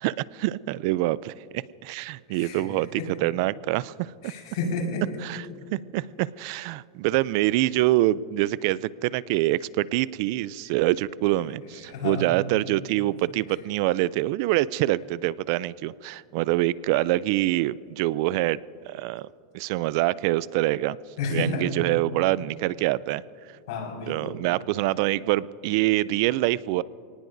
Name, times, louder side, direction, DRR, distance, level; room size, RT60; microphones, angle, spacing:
voice 1, 0.0-4.1 5.2-18.6 18.9-19.3 19.5-21.0 21.3-23.2 24.1-26.8, right 16 dB, 55° right, 20 dB, 0.4 m, -25 dB
voice 2, 2.3-2.7 3.0-3.1 4.2-5.0 11.9-12.3 21.2-21.6 23.7-24.4, left 3 dB, 70° left, 0 dB, 5.0 m, -30 dB
28.0 x 19.0 x 2.6 m, 2.4 s
supercardioid pair, 150°, 3 cm